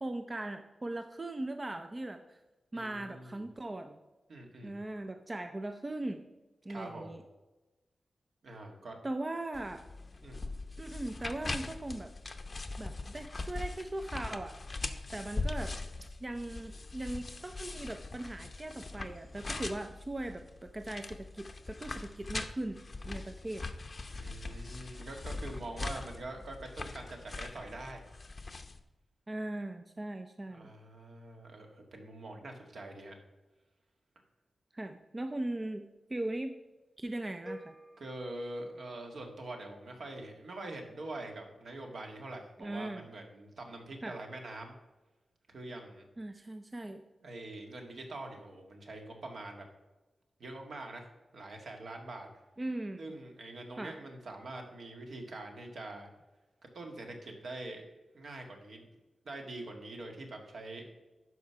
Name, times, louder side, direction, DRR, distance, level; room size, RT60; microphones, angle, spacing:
voice 1, 0.0-2.4 2.7-4.0 4.6-6.2 6.6-7.2 9.0-9.8 10.8-12.1 12.8-14.6 15.1-15.8 16.2-22.8 23.0-23.6 29.3-30.7 34.7-36.6 37.0-37.7 42.6-43.1 44.0-44.2 46.2-47.0 52.6-53.1 53.8-53.9, right 1 dB, 20° right, 7 dB, 0.5 m, -39 dB
voice 2, 2.7-3.4 4.3-4.8 6.7-7.2 8.4-9.0 10.2-10.4 24.1-28.1 30.5-33.2 38.0-44.8 45.5-46.0 47.2-49.7 50.4-51.1 51.3-52.3 53.0-56.1 56.7-57.8 58.1-58.8 59.3-60.9, right 2 dB, 65° right, 3 dB, 1.8 m, -44 dB
sound 1, 9.5-28.8, left 3 dB, 30° left, 0.7 m, -41 dB
sound 2, 37.5-39.5, equal, ahead, 1.1 m, -50 dB
12.0 x 4.9 x 5.7 m, 1.1 s
wide cardioid pair, 145°, 0 cm